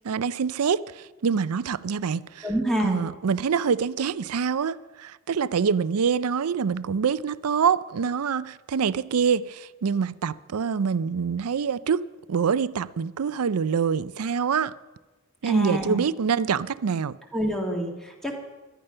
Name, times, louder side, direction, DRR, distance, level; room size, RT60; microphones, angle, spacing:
voice 1, 0.0-2.5 2.8-14.7 15.4-17.2, right 6 dB, 85° right, 0.5 m, -25 dB
voice 2, 2.4-3.0 15.5-16.0 17.3-18.4, right 1 dB, ahead, 1.9 m, -26 dB
17.5 x 12.5 x 5.6 m
head